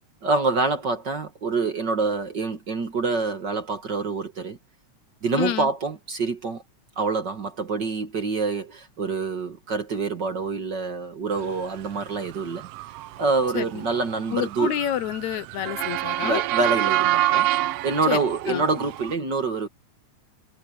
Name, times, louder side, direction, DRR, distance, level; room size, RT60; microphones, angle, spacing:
voice 1, 0.2-4.6 5.2-6.6 7.0-12.7 13.2-14.7 16.2-17.5 17.8-19.7, right 4 dB, 40° right, 1.9 m, -26 dB
voice 2, 5.4-5.7 13.5-13.8 14.3-16.4 18.0-18.2 18.5-18.7, left 11 dB, 75° left, 2.3 m, -28 dB
Motor vehicle (road) / Siren, 11.9-19.1, right 14 dB, 90° right, 1.3 m, -27 dB
omnidirectional pair, 3.4 m